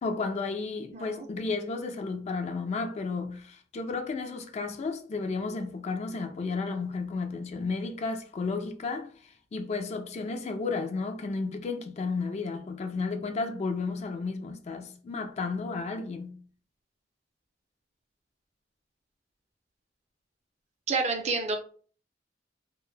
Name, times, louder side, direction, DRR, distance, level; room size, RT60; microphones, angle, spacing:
voice 1, 0.0-16.4, left 4 dB, 40° left, 0.3 m, -33 dB
voice 2, 0.9-1.3 20.9-21.6, right 3 dB, 40° right, 0.4 m, -29 dB
2.1 x 2.0 x 3.2 m
head